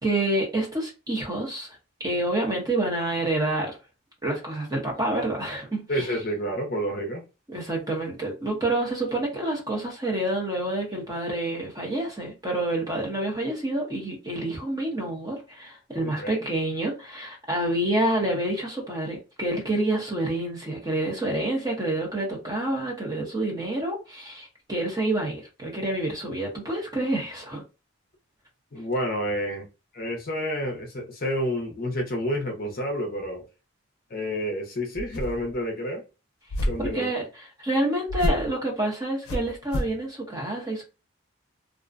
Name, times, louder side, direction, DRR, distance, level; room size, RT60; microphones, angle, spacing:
voice 1, 0.0-3.8 4.2-6.1 7.5-27.6 36.8-40.8, right 1 dB, 20° right, 0.7 m, -28 dB
voice 2, 5.9-7.2 16.0-16.4 28.7-29.7 29.9-33.4 34.1-36.0 36.6-37.1, equal, 45° left, 0.6 m, -29 dB
sound 1, 35.0-35.6 36.5-37.0 38.1-38.5 39.3-40.0, left 1 dB, 90° left, 0.5 m, -29 dB
2.4 x 2.1 x 2.4 m
head